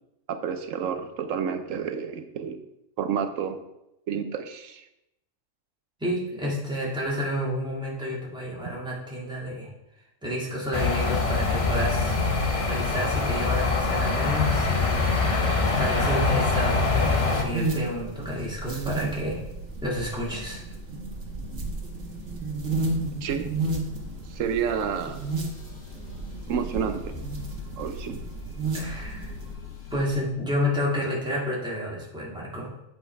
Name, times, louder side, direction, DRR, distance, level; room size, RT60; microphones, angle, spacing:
voice 1, 0.3-2.6 3.0-3.6 4.1-4.8 8.6-8.7 23.2-23.5 24.3-25.2 26.5-27.1 27.7-28.2, right 7 dB, 90° right, 8 dB, 1.1 m, -30 dB
voice 2, 6.0-9.7 10.2-12.2 12.6-15.5 15.8-19.4 19.8-20.6 28.7-29.3 29.9-32.7, left 1 dB, 5° right, -6 dB, 2.2 m, -30 dB
sound 1, 10.7-17.4, left 3 dB, 30° left, 0.8 m, -24 dB
sound 2, 16.8-29.5, right 3 dB, 70° right, 1.7 m, -33 dB
sound 3, 20.5-30.1, left 6 dB, 50° left, 1.4 m, -46 dB
8.3 x 5.5 x 4.5 m, 0.86 s
omnidirectional pair, 1.3 m